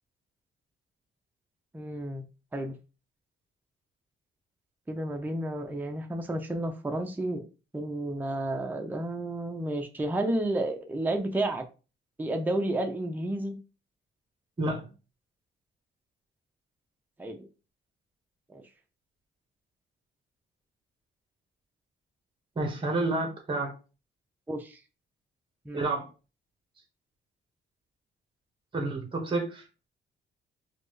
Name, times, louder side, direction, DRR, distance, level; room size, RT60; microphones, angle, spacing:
voice 1, 1.7-2.2 2.5-2.7 4.9-7.4 7.7-11.6 12.2-13.5 17.2-17.5 18.5-18.6 24.5-24.8 25.7-25.8, right 1 dB, 10° right, 4 dB, 0.6 m, -31 dB
voice 2, 14.6-14.9 22.5-23.7 25.7-26.1 28.7-29.6, right 2 dB, 25° right, 2 dB, 1.3 m, -29 dB
4.1 x 2.5 x 3.2 m, 0.32 s
cardioid pair, 90°, 20 cm